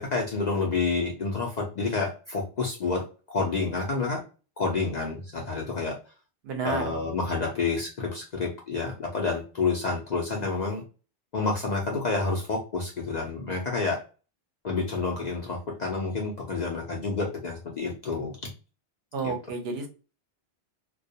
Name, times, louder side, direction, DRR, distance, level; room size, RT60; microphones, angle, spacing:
voice 1, 0.0-4.2 4.6-6.0 6.6-10.8 11.3-14.0 14.6-18.4 19.2-19.3, left 4 dB, 55° left, 0 dB, 0.5 m, -29 dB
voice 2, 6.4-6.9 19.1-19.9, right 4 dB, 70° right, 5 dB, 0.8 m, -30 dB
2.2 x 2.1 x 2.6 m, 0.34 s
omnidirectional pair, 1.2 m